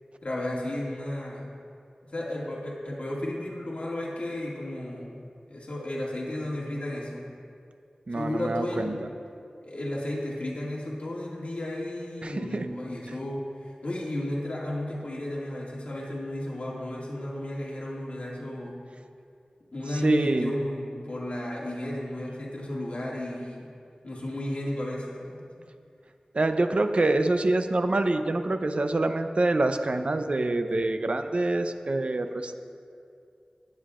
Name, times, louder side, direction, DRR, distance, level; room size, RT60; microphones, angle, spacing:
voice 1, 0.2-1.5 2.0-5.2 5.5-7.3 8.1-9.0 9.6-18.8 19.7-23.7 24.0-25.4, left 1 dB, 60° left, -4 dB, 2.1 m, -33 dB
voice 2, 8.1-9.0 12.2-12.7 13.1-13.2 19.9-20.5 26.3-32.5, right 2 dB, 55° right, 8 dB, 0.6 m, -26 dB
23.5 x 9.5 x 2.5 m, 2.4 s
wide cardioid pair, 65°, 2 cm